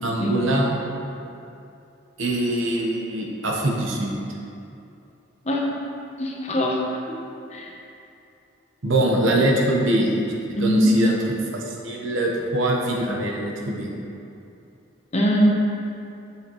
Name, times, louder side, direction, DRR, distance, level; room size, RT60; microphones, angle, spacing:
voice 1, 0.0-0.7 2.2-4.1 8.8-10.1 10.5-11.2 11.5-13.9, right 1 dB, 75° right, -1 dB, 1.0 m, -23 dB
voice 2, 6.2-6.8 7.1-7.2 7.5-7.7 10.5-10.9 15.1-15.5, equal, 35° left, -2 dB, 0.8 m, -21 dB
7.2 x 6.6 x 3.1 m, 2.7 s
head